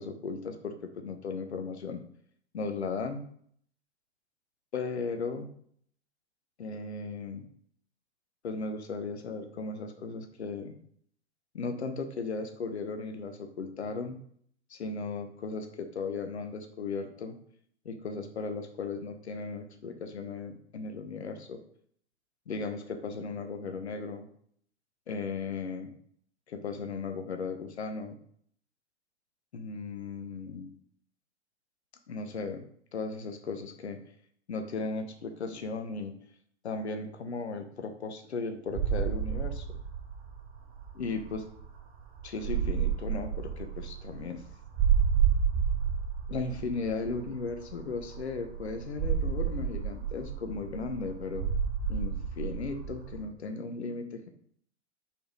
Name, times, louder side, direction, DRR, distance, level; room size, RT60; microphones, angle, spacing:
voice 1, 0.0-2.0 2.5-3.3 4.7-5.5 6.6-7.4 8.4-10.7 11.5-14.2 14.7-17.4 17.8-21.6 22.5-24.3 25.1-25.9 26.5-28.2 29.5-30.7 32.1-34.0 34.5-36.1 36.6-39.7 40.9-41.5 42.2-44.4 46.3-51.4 51.9-54.3, left 4 dB, 70° left, 7 dB, 1.2 m, -36 dB
sound 1, 38.7-53.2, right 8 dB, 35° right, 1.9 m, -31 dB
5.4 x 5.2 x 4.6 m, 0.63 s
figure-of-eight pair, 100°, 34 cm